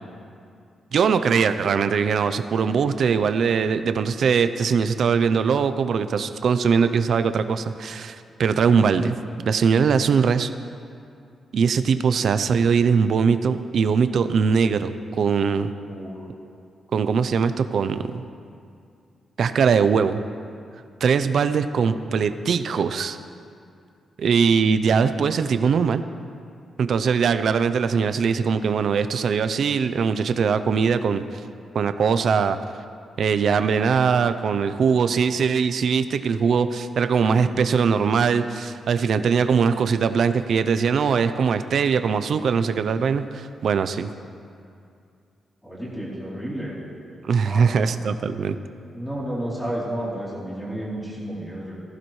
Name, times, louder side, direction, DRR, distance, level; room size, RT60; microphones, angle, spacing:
voice 1, 0.9-9.2 9.5-10.5 11.5-15.7 16.9-18.2 19.4-20.2 21.0-23.2 24.2-26.0 26.8-31.2 31.7-32.6 33.2-44.1 47.2-48.6, right 6 dB, 55° right, 11 dB, 0.5 m, -21 dB
voice 2, 15.8-16.3 45.6-46.8 47.4-47.7 48.9-51.7, right 1 dB, 5° left, -7 dB, 3.2 m, -31 dB
18.0 x 15.0 x 3.2 m, 2.4 s
wide cardioid pair, 175°, 0 cm